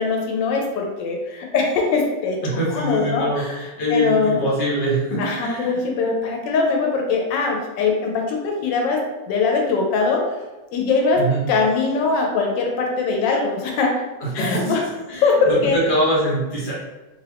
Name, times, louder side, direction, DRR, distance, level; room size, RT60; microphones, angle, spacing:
voice 1, 0.0-2.4 2.7-4.4 5.2-10.4 10.7-11.2 11.5-14.0 14.3-14.9 15.2-15.8, left 4 dB, 85° left, 1 dB, 1.2 m, -21 dB
voice 2, 2.4-3.4 3.8-5.7 11.2-11.4 14.4-14.7 15.1-16.7, right 1 dB, 40° left, -6 dB, 1.2 m, -23 dB
2.9 x 2.4 x 3.3 m, 1.1 s
omnidirectional pair, 1.9 m